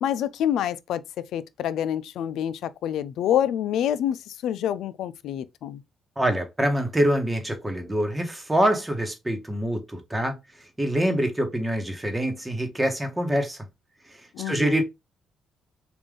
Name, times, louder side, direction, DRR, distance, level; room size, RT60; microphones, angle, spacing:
voice 1, 0.0-5.8 14.3-14.8, left 10 dB, 80° left, 0.3 m, -27 dB
voice 2, 6.2-10.4 10.8-13.6 14.1-14.8, right 1 dB, 10° right, 1.1 m, -25 dB
3.4 x 2.5 x 3.5 m
cardioid pair, 90°, 0 cm